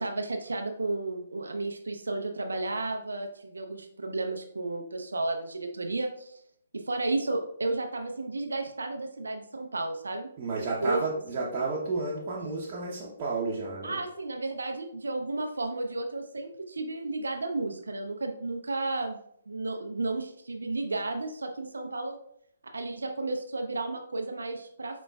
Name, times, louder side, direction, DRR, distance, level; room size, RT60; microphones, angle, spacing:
voice 1, 0.0-6.4 6.7-11.0 11.3-11.5 13.8-19.2 19.5-22.2 22.7-25.0, right 2 dB, 80° right, 4 dB, 0.5 m, -33 dB
voice 2, 10.4-14.0, right 3 dB, 35° right, -6 dB, 0.8 m, -31 dB
5.2 x 3.0 x 2.3 m, 0.68 s
figure-of-eight pair, 140°, 0 cm